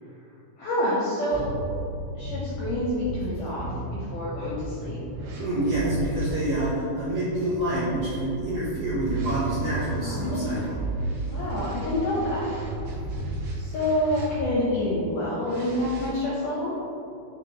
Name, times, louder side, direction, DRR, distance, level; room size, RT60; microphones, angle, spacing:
voice 1, 0.6-1.6 2.2-5.0 10.0-10.7 11.3-12.5 13.5-16.7, left 1 dB, 80° left, -7 dB, 1.9 m, -28 dB
sound 1, 1.3-6.4 7.3-14.7 15.4-16.1, right 1 dB, 90° right, 3.5 m, -34 dB
voice 2, 5.4-10.8, right 1 dB, 70° right, -10 dB, 1.9 m, -27 dB
10.0 x 3.4 x 3.0 m, 2.7 s
omnidirectional pair, 5.0 m